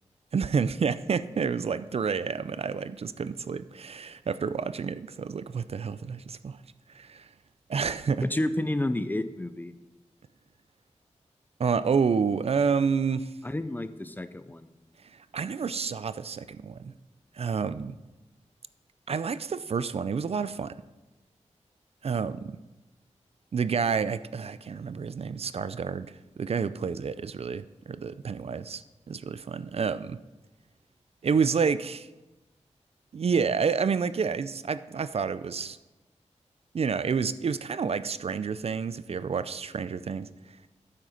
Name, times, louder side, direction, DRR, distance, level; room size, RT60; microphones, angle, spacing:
voice 1, 0.3-6.6 6.9-7.3 7.7-8.3 11.6-13.3 15.1-16.9 17.3-18.0 19.1-20.8 22.0-22.6 23.5-30.2 31.2-32.1 33.1-35.8 36.7-40.3, right 6 dB, 55° right, 14 dB, 0.4 m, -29 dB
voice 2, 8.2-9.7 13.4-14.7, left 1 dB, 15° left, 11 dB, 0.5 m, -30 dB
9.6 x 7.5 x 5.1 m, 1.1 s
wide cardioid pair, 115°, 12 cm